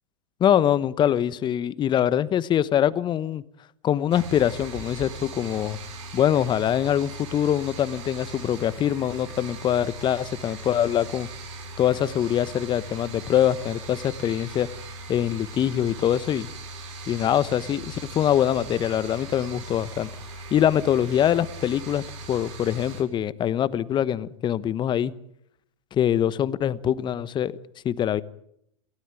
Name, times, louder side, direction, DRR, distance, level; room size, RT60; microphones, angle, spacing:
voice 1, 0.4-3.4 3.8-5.8 6.1-11.3 11.8-14.7 15.1-16.5 17.1-20.1 20.5-22.0 22.3-25.1 25.9-27.5 27.8-28.2, left 10 dB, 25° left, 1.1 m, -23 dB
sound 1, 4.1-23.0, right 2 dB, 60° right, 7.3 m, -39 dB
28.0 x 16.5 x 9.3 m
hypercardioid pair, 100°, 17 cm